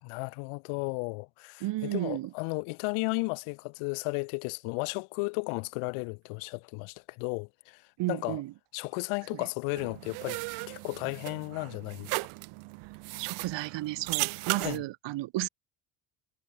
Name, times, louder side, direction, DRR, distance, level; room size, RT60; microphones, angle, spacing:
voice 1, 0.0-7.8 8.1-8.4 8.7-10.4 10.7-12.2 14.5-14.8, left 32 dB, 85° left, 4.1 m, -34 dB
voice 2, 1.6-2.3 8.0-8.5 13.2-15.5, right 17 dB, 60° right, 1.1 m, -33 dB
sound 1, 9.7-14.8, right 25 dB, 80° right, 2.2 m, -36 dB
supercardioid pair, 90°, 49 cm